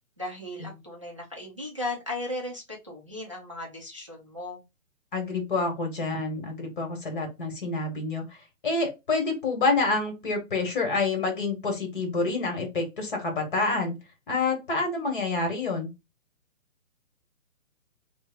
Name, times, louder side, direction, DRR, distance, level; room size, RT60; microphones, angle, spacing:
voice 1, 0.2-4.6, left 2 dB, 25° right, -1 dB, 0.4 m, -36 dB
voice 2, 5.1-8.4 8.6-14.0 14.3-15.9, left 3 dB, 35° left, 3 dB, 1.2 m, -28 dB
3.2 x 2.1 x 3.4 m, 0.24 s
hypercardioid pair, 165°, 42 cm